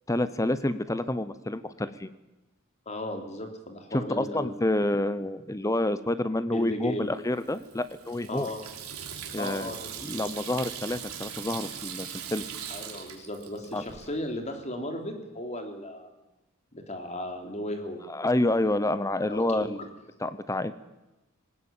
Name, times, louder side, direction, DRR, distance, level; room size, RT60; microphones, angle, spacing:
voice 1, 0.1-2.1 3.9-8.5 9.3-9.7 10.0-12.4 13.7-13.8 18.1-19.8 20.2-20.7, left 1 dB, 15° left, 13 dB, 0.7 m, -28 dB
voice 2, 2.8-4.5 6.5-7.1 8.3-8.6 9.4-10.3 12.7-16.1 16.7-18.0 19.3-19.9, left 1 dB, 30° left, 4 dB, 3.3 m, -36 dB
Water tap faucet / Sink (filling or washing), 7.3-14.1, right 8 dB, 75° right, 3.6 m, -40 dB
19.5 x 19.5 x 8.8 m, 1.0 s
head